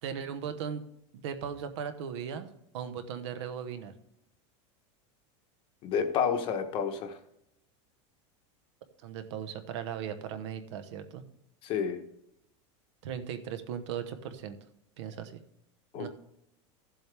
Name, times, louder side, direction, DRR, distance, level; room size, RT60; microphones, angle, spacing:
voice 1, 0.0-0.9 1.1-3.9 9.0-11.2 13.0-14.6 15.0-15.4 15.9-16.1, right 8 dB, 70° right, 10 dB, 1.1 m, -38 dB
voice 2, 5.8-7.1 11.6-12.0 15.9-16.1, left 7 dB, 35° left, 7 dB, 1.0 m, -29 dB
13.5 x 7.7 x 3.4 m, 0.81 s
supercardioid pair, 170°, 16 cm